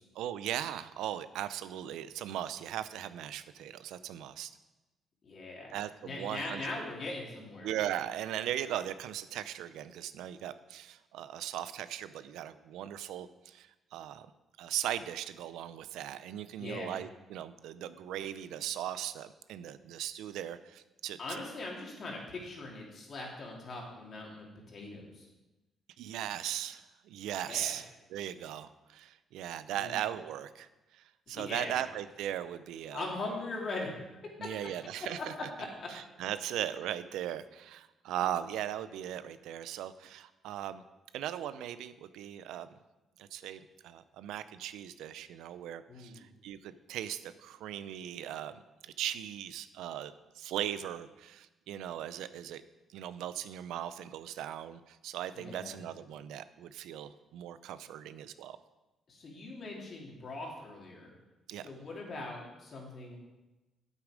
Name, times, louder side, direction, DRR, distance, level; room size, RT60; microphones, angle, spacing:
voice 1, 0.1-4.5 5.7-6.6 7.6-14.3 14.6-21.4 26.0-33.0 34.4-35.3 35.9-40.8 41.1-42.7 43.2-52.6 52.9-58.6 61.5-61.6, right 11 dB, 90° right, 14 dB, 0.4 m, -38 dB
voice 2, 5.2-5.8 6.0-7.7 16.6-16.9 21.2-25.2 27.4-27.8 29.8-29.9 31.3-31.8 32.9-33.9 35.8-35.9 45.9-46.2 55.3-55.8 59.1-61.1 61.6-63.2, left 2 dB, 50° left, -1 dB, 3.0 m, -41 dB
8.3 x 8.3 x 5.1 m, 1.1 s
cardioid pair, 90°, 0 cm